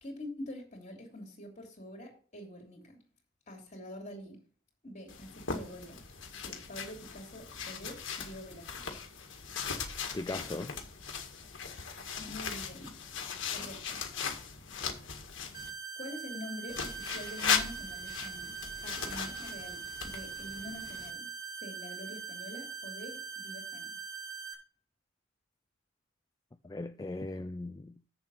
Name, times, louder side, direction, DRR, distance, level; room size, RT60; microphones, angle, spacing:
voice 1, 0.0-3.0 3.5-4.4 4.8-6.0 6.4-8.7 12.2-13.0 13.5-14.0 16.0-18.6 18.8-21.3 21.6-24.0, left 1 dB, 35° left, 3.2 m, -45 dB
sound 1, 5.1-15.7 16.7-21.1, left 6 dB, 65° left, 1.8 m, -38 dB
voice 2, 10.1-10.8 26.6-28.1, left 2 dB, 20° left, 0.4 m, -38 dB
sound 2, 15.5-24.5, right 6 dB, 15° right, 1.8 m, -42 dB
7.6 x 7.3 x 5.3 m
head